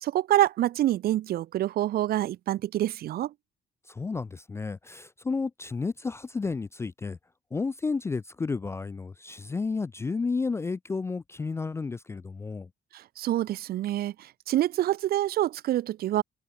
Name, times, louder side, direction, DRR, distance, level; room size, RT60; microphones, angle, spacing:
voice 1, 0.0-3.3 12.9-16.2, right 13 dB, 65° right, 1.1 m, -26 dB
voice 2, 3.9-7.2 7.5-12.7, left 4 dB, 15° left, 0.3 m, -32 dB
cardioid pair, 110°, 17 cm